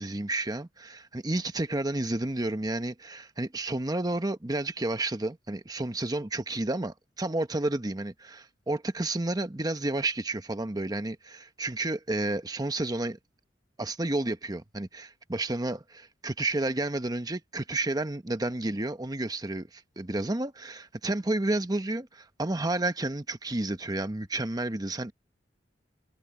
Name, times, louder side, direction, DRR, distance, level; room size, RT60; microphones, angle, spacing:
voice 1, 0.0-13.2 13.8-25.1, right 2 dB, 20° right, 1.0 m, -31 dB
head